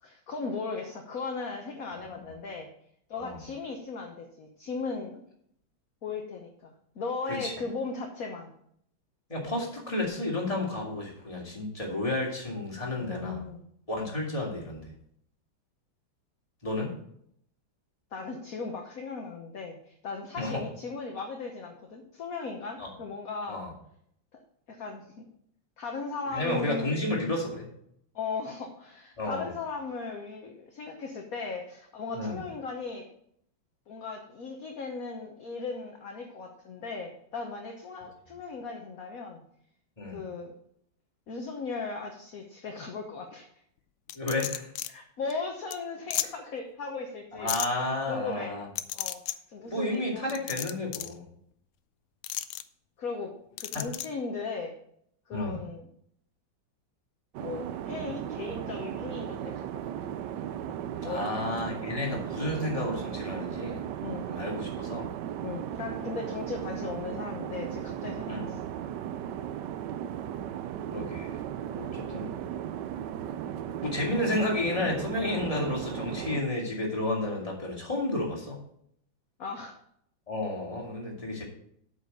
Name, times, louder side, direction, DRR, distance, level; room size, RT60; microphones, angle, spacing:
voice 1, 0.0-2.7 3.1-5.2 6.0-8.5 13.0-13.6 18.1-23.6 24.3-24.4 24.7-25.2 25.8-26.9 28.1-33.0 33.9-39.4 40.1-40.5 41.3-43.5 44.9-48.6 48.9-49.2 49.5-50.4 53.0-53.3 53.6-54.7 55.3-55.9 57.4-59.7 60.7-61.8 64.0-64.3 65.4-68.6 75.9-76.0 79.4-79.7, left 4 dB, 50° left, 2 dB, 1.4 m, -37 dB
voice 2, 9.3-13.4 13.9-14.8 16.6-16.9 20.4-20.6 22.8-22.9 23.5-23.7 26.3-27.7 29.2-29.5 32.1-32.4 40.0-40.2 44.1-44.7 47.3-48.7 49.6-51.2 53.7-53.8 55.3-55.6 61.0-63.8 64.3-65.1 68.3-68.4 70.9-72.4 73.8-78.6 80.3-81.4, left 2 dB, 15° left, -2 dB, 2.5 m, -31 dB
sound 1, 44.1-44.9 45.3-45.4 45.7-45.8 46.1-46.3 47.5-47.7 48.8-49.4 50.3-51.1 52.2-52.6 53.6-54.1, left 13 dB, 75° left, 1.3 m, -33 dB
sound 2, 57.3-76.4, right 10 dB, 70° right, 1.1 m, -36 dB
8.2 x 6.0 x 6.6 m, 0.69 s
omnidirectional pair, 2.1 m